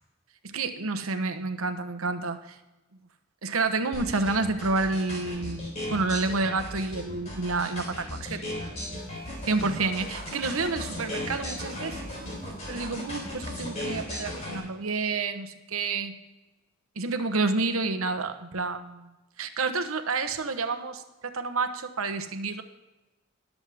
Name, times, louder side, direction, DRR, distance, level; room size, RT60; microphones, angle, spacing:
voice 1, 0.4-2.6 3.4-8.5 9.5-12.1 12.7-16.2 17.0-22.6, right 3 dB, 85° right, 9 dB, 1.0 m, -29 dB
sound 1, 3.9-14.6, left 1 dB, 30° left, 3.6 m, -36 dB
sound 2, 8.6-15.0, right 3 dB, 45° right, 1.1 m, -48 dB
19.5 x 7.3 x 3.5 m, 1.1 s
head